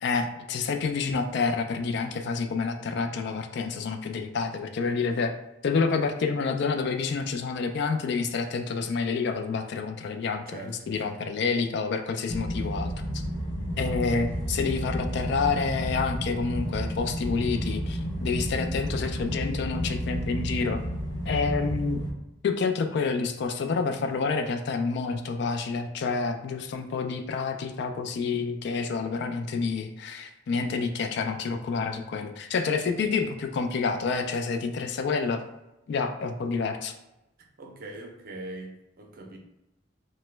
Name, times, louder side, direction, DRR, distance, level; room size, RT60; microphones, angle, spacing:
voice 1, 0.0-5.3 5.6-10.6 10.9-12.9 13.8-20.8 21.3-22.0 22.4-35.4 35.9-36.9, left 4 dB, 65° left, 6 dB, 0.3 m, -28 dB
voice 2, 10.5-11.2 12.6-12.8 37.6-39.4, right 2 dB, 50° right, 2 dB, 0.5 m, -42 dB
sound 1, 12.3-22.1, equal, 80° left, 0.7 m, -31 dB
2.8 x 2.1 x 3.2 m, 0.92 s
head